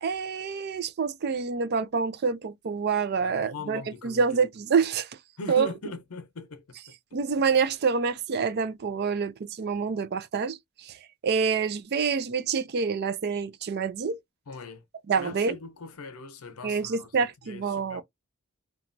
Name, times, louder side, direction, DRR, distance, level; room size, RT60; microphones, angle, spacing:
voice 1, 0.0-5.1 5.5-5.7 7.1-11.0 11.2-14.2 15.1-15.6 16.6-18.0, right 5 dB, 50° right, 0.4 m, -27 dB
voice 2, 3.2-4.3 5.4-6.6 14.5-14.8 15.2-18.0, left 4 dB, 80° left, 0.6 m, -40 dB
2.9 x 2.3 x 2.6 m
head